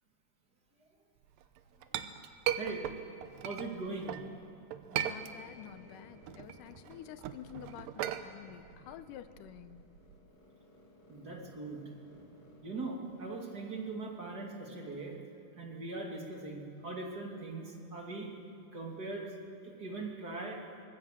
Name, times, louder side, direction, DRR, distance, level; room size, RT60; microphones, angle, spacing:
Chink clink, 1.4-4.3 4.7-5.8 6.1-10.2, right 11 dB, 75° right, 2.5 m, -38 dB
voice 1, 3.4-4.2 11.1-11.8 12.6-15.1 15.6-18.3 18.7-19.3 19.6-20.6, right 3 dB, 30° right, 0 dB, 2.6 m, -40 dB
voice 2, 4.9-9.8, left 11 dB, 75° left, 12 dB, 2.2 m, -49 dB
sound 1, 4.9-14.6, left 1 dB, 50° left, 4.8 m, -60 dB
25.0 x 20.0 x 7.5 m, 2.9 s
omnidirectional pair, 4.1 m